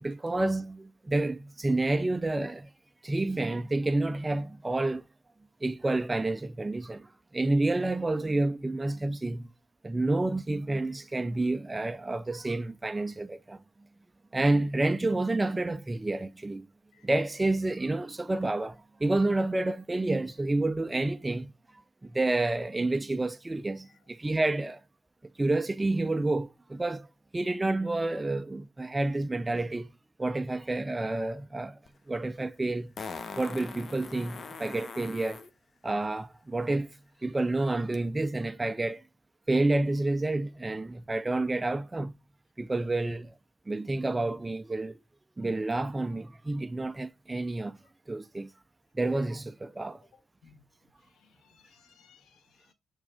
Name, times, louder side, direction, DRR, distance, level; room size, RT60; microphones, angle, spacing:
voice 1, 0.0-2.7 3.0-5.0 5.6-9.5 9.8-13.6 14.3-16.7 17.0-21.5 22.0-24.8 25.4-27.1 27.3-29.9 30.2-31.8 32.1-32.9 33.4-35.4 35.8-39.0 39.5-42.1 42.6-43.3 43.7-45.0 45.4-47.8 48.1-48.5 48.9-50.0, right 2 dB, 15° right, 0.4 m, -29 dB
Fart, 31.9-32.0 33.0-35.5 37.9-38.0, left 5 dB, 45° left, 0.8 m, -41 dB
voice 2, 51.1-52.7, left 6 dB, 75° left, 1.6 m, -62 dB
7.1 x 3.5 x 4.7 m
cardioid pair, 90°, 0 cm